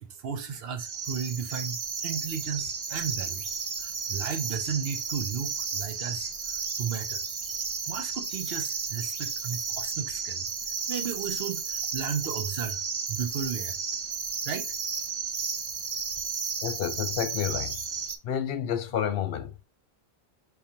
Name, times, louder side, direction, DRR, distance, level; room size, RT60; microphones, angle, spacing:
voice 1, 0.0-3.4 3.8-7.2 7.9-10.5 10.9-12.8 13.1-13.8 14.5-14.7, right 7 dB, 70° right, 0.9 m, -34 dB
sound 1, 0.8-18.2, right 5 dB, 45° right, 0.5 m, -33 dB
voice 2, 16.6-17.8 18.2-19.6, left 9 dB, 65° left, 0.7 m, -30 dB
6.5 x 2.4 x 2.7 m
omnidirectional pair, 1.1 m